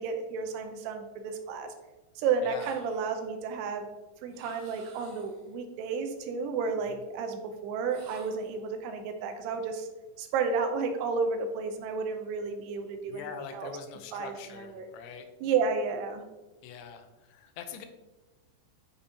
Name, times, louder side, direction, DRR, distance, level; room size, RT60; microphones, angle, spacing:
voice 1, 0.0-1.7 2.2-3.9 4.2-9.9 10.2-13.7 14.1-14.9 15.4-16.2, right 5 dB, 90° right, 5 dB, 2.4 m, -32 dB
voice 2, 2.4-2.7 13.1-15.3 16.6-17.9, left 7 dB, 85° left, 7 dB, 2.8 m, -43 dB
sound 1, 2.5-3.3 4.3-5.5 7.9-8.6, right 3 dB, 70° right, 2.1 m, -53 dB
8.6 x 5.1 x 2.8 m, 1.1 s
omnidirectional pair, 5.4 m